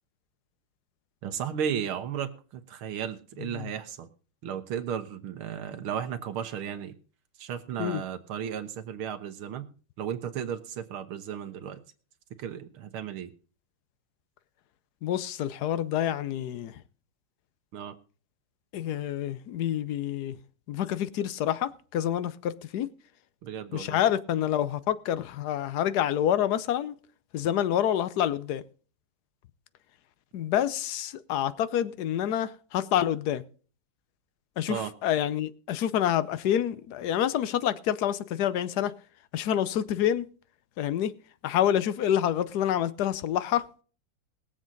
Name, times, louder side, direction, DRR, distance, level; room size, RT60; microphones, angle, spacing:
voice 1, 1.2-4.1 4.4-6.9 7.4-9.7 10.0-11.8 12.4-13.3 17.7-17.9 23.4-24.0 34.7-34.9, right 8 dB, 80° right, 2.0 m, -34 dB
voice 2, 15.0-16.7 18.7-20.4 20.7-22.9 23.7-26.9 27.3-28.6 30.3-33.4 34.6-38.9 39.3-40.3 40.8-41.1 41.4-43.7, left 10 dB, 65° left, 1.1 m, -27 dB
21.0 x 7.6 x 3.9 m
omnidirectional pair, 2.3 m